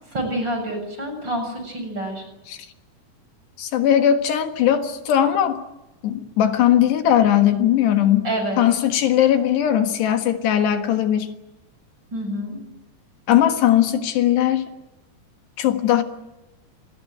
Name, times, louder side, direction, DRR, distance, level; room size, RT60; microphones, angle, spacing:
voice 1, 0.1-2.2 8.2-8.6 12.1-12.6, right 1 dB, 25° right, 5 dB, 7.4 m, -27 dB
voice 2, 3.6-5.6 6.0-8.3 8.6-11.3 13.3-14.7 15.6-16.0, left 10 dB, 80° left, 6 dB, 3.7 m, -19 dB
27.0 x 21.0 x 9.2 m, 1.0 s
omnidirectional pair, 4.8 m